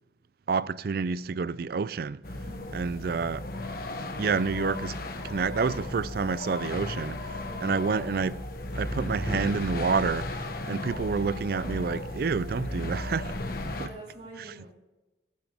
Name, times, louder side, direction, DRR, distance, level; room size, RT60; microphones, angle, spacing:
voice 1, 0.5-2.2 2.7-3.5 4.2-5.0 5.2-8.3 8.7-10.4 10.7-13.4, right 5 dB, 55° right, 0.4 m, -28 dB
sound 1, 2.2-13.9, left 2 dB, 55° left, 1.3 m, -35 dB
voice 2, 2.4-2.8 7.4-8.2 13.7-14.7, right 1 dB, 35° right, 4.0 m, -47 dB
14.5 x 12.0 x 3.5 m
head